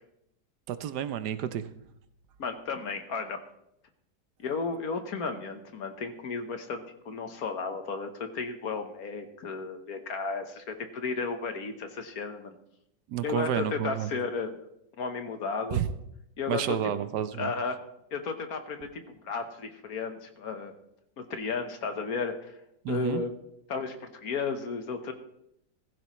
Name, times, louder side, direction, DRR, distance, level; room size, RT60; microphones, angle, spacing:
voice 1, 0.7-1.7 13.1-14.1 15.7-15.9 16.5-17.5 22.8-23.2, right 10 dB, 70° right, 12 dB, 1.2 m, -30 dB
voice 2, 2.4-3.4 4.4-12.6 13.2-14.6 15.0-15.8 16.4-16.8 17.4-17.8 18.1-20.7 21.2-22.6 22.9-23.3 23.7-25.1, left 4 dB, 60° left, 7 dB, 1.5 m, -33 dB
15.0 x 15.0 x 3.1 m, 0.79 s
omnidirectional pair, 1.9 m